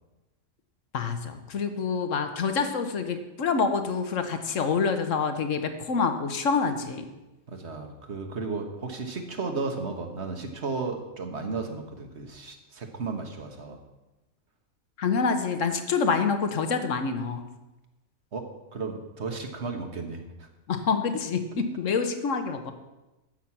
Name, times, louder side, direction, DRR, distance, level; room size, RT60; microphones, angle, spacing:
voice 1, 0.9-7.1 15.0-17.4 20.7-22.7, left 5 dB, 65° left, 8 dB, 1.4 m, -27 dB
voice 2, 7.5-13.8 18.3-20.5, right 4 dB, 50° right, 4 dB, 1.6 m, -34 dB
12.5 x 8.2 x 5.9 m, 1.0 s
omnidirectional pair, 1.5 m